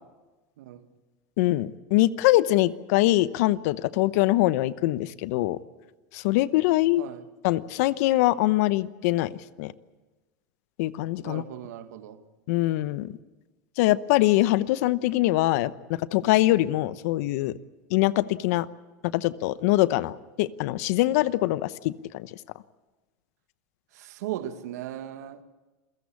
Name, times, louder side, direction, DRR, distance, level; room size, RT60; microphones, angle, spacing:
voice 1, 1.4-5.6 6.1-7.0 7.4-9.3 9.6-9.7 10.8-11.4 12.5-13.1 13.8-17.5 17.9-18.7 19.1-22.3, left 17 dB, 70° left, 0.9 m, -23 dB
voice 2, 11.2-12.2 23.9-25.4, right 12 dB, 80° right, 1.7 m, -37 dB
28.0 x 16.5 x 8.5 m
hypercardioid pair, 100°, 9 cm